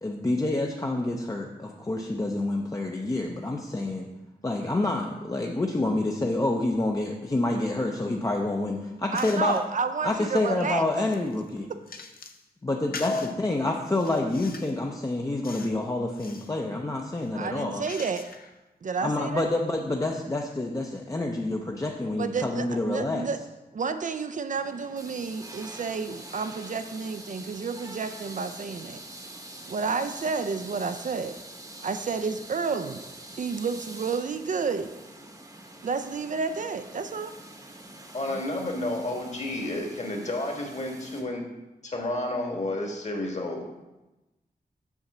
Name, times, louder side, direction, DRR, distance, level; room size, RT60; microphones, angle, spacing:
voice 1, 0.0-4.1 4.4-9.6 10.0-11.7 12.6-17.8 19.0-23.3, left 2 dB, 20° left, 1 dB, 0.6 m, -28 dB
sound 1, 9.1-9.6 10.2-12.4 12.9-13.3 13.9-14.8 15.4-15.8 16.1-16.6 17.1-18.6, left 4 dB, 65° left, 0.7 m, -44 dB
voice 2, 9.1-10.8 17.3-18.3 18.8-19.5 22.2-23.4 23.7-29.0 29.7-31.4 31.8-33.0 33.4-34.9 35.8-37.3, right 5 dB, 50° right, 9 dB, 0.4 m, -30 dB
voice 3, 13.0-13.3 38.1-41.5 41.8-43.7, left 1 dB, 45° left, 2 dB, 1.5 m, -31 dB
sound 2, 24.5-41.2, right 1 dB, 20° right, 0.9 m, -45 dB
7.3 x 3.9 x 6.6 m, 1.0 s
wide cardioid pair, 110°, 17 cm